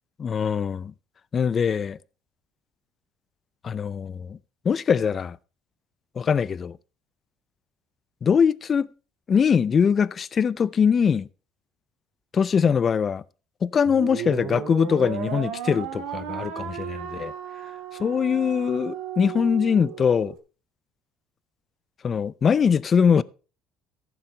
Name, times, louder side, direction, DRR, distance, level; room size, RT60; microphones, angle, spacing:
voice 1, 0.2-0.9 1.3-2.0 3.6-4.4 4.7-5.4 6.2-6.8 8.2-8.9 9.3-11.3 12.3-13.2 13.6-17.3 18.0-20.3 22.0-23.2, left 6 dB, 30° left, 0.5 m, -22 dB
sound 1, 13.9-20.4, right 9 dB, 85° right, 1.8 m, -35 dB
15.0 x 7.0 x 4.3 m
cardioid pair, 130°, 0 cm